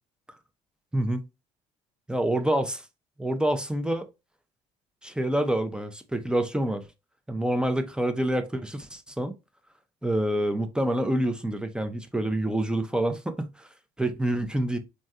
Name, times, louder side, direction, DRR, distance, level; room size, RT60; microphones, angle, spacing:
voice 1, 0.9-1.2 2.1-2.8 3.2-4.1 5.0-6.9 7.3-9.3 10.0-13.7 14.0-14.8, right 1 dB, 5° right, 0.5 m, -27 dB
3.2 x 2.7 x 2.2 m
supercardioid pair, 70°, 15 cm